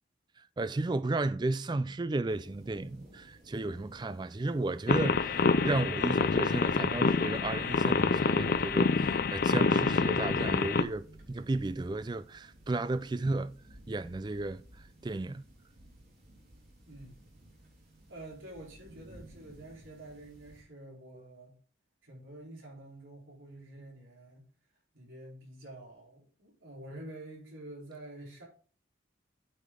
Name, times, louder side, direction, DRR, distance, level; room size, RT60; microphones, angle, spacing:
voice 1, 0.6-13.6 13.9-14.6 15.0-15.5, right 2 dB, 20° right, 0.3 m, -33 dB
sound 1, 2.3-20.6, right 1 dB, 50° right, 3.8 m, -55 dB
sound 2, 4.9-10.8, left 4 dB, 50° left, 0.4 m, -27 dB
voice 2, 16.9-17.2 18.1-21.6 22.0-24.5 24.9-28.5, right 1 dB, 80° right, 4.0 m, -48 dB
9.2 x 5.7 x 3.7 m
head